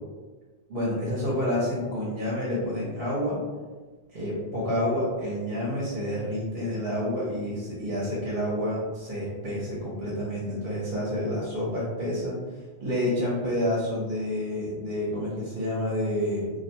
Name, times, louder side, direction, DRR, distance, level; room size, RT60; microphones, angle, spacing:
voice 1, 0.7-3.4 4.1-16.5, left 1 dB, 55° right, -6 dB, 0.8 m, -29 dB
2.4 x 2.2 x 2.7 m, 1.3 s
omnidirectional pair, 1.1 m